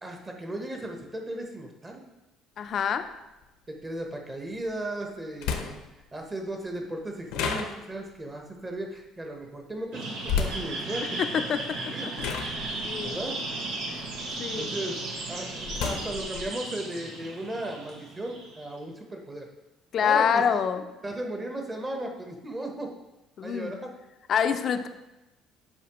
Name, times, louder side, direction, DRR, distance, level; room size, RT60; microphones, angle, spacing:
voice 1, 0.0-2.0 3.7-5.8 6.1-11.2 11.9-12.1 13.0-13.4 14.6-15.0 15.3-19.5 20.0-20.6 21.0-22.9 23.4-23.9, right 1 dB, 20° right, 2 dB, 1.0 m, -36 dB
sound 1, 2.6-2.7 4.7-4.8 5.4-6.0 7.3-8.2 10.2-10.7 11.6-11.8 12.2-14.6 15.0-16.5, left 6 dB, 85° left, 0.8 m, -32 dB
voice 2, 2.6-3.1 11.2-11.6 12.8-13.2 13.9-14.0 14.4-14.7 19.9-20.8 23.4-23.8 24.3-24.9, left 7 dB, 40° left, 9 dB, 0.5 m, -26 dB
sound 2, 9.9-18.7, right 2 dB, 85° right, 1.6 m, -35 dB
8.0 x 5.6 x 3.0 m, 1.0 s
cardioid pair, 140°, 0 cm